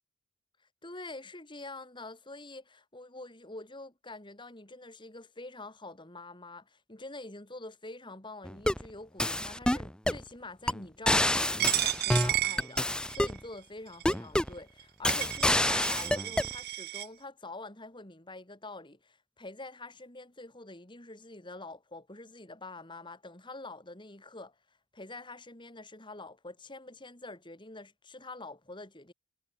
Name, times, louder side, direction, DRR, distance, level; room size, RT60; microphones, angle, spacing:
voice 1, 0.8-24.5 24.9-29.1, left 2 dB, 25° left, 3.3 m, -46 dB
sound 1, 8.4-8.9 9.2-10.2 10.7-10.8 11.1-13.4 14.0-14.6 15.0-16.5, left 1 dB, 5° left, 0.6 m, -27 dB
Coin (dropping), 11.6-13.4 14.0-14.1 14.8-14.9 15.1-17.1, right 15 dB, 50° right, 0.3 m, -32 dB
head